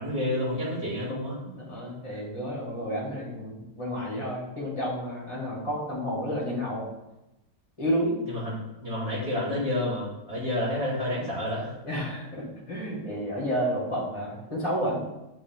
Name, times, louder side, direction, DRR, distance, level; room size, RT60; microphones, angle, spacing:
voice 1, 0.0-1.4 8.2-11.7, left 1 dB, 20° right, -9 dB, 2.6 m, -29 dB
voice 2, 1.5-6.9 7.8-8.2 11.8-15.0, equal, 20° left, -6 dB, 1.9 m, -31 dB
8.9 x 3.7 x 3.5 m, 0.96 s
omnidirectional pair, 1.8 m